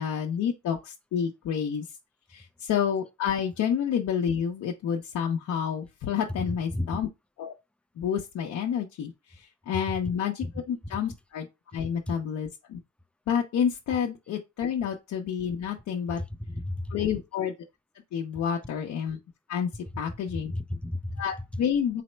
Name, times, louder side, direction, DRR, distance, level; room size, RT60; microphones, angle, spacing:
voice 1, 0.0-1.8 2.3-7.1 7.4-7.5 8.0-11.5 11.7-12.8 13.3-16.2 16.9-17.5 18.1-19.2 19.5-19.7 20.0-20.5 21.2-22.0, left 8 dB, 65° left, 0.6 m, -29 dB
voice 2, 6.5-7.0 10.4-10.5 12.1-12.2 16.5-17.0 19.9-20.0 20.3-21.2, left 1 dB, 5° left, 0.3 m, -33 dB
4.2 x 2.0 x 4.3 m
cardioid pair, 90°, 30 cm